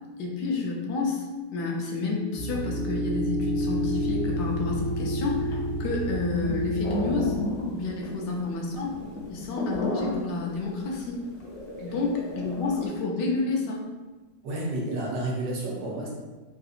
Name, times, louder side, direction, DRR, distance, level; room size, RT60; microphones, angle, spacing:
voice 1, 0.2-1.3 1.5-7.4 7.7-9.0 9.3-11.2 11.8-13.8, left 3 dB, 85° left, -1 dB, 1.3 m, -30 dB
sound 1, 2.3-7.4, equal, 60° right, 1.2 m, -29 dB
sound 2, 3.8-3.9 4.1-12.9, left 1 dB, 60° left, 0.8 m, -34 dB
voice 2, 14.4-16.1, right 1 dB, 80° right, -4 dB, 1.4 m, -30 dB
3.8 x 2.6 x 2.4 m, 1.3 s
omnidirectional pair, 1.8 m